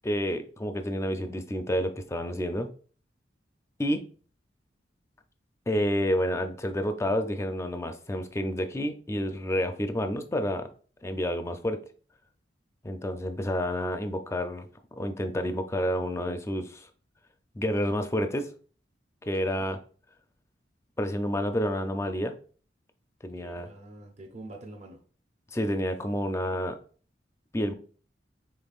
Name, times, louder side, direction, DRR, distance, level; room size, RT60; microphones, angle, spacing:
voice 1, 0.0-2.7 3.8-4.0 5.7-10.7 11.0-11.8 12.8-14.6 15.0-16.9 17.5-18.5 19.3-19.8 21.0-22.3 23.2-23.7 25.5-26.8 27.5-27.7, equal, 15° left, 7 dB, 0.4 m, -29 dB
voice 2, 23.4-25.0 27.7-27.8, right 2 dB, 40° right, 2 dB, 0.7 m, -46 dB
5.3 x 3.7 x 2.4 m, 0.41 s
head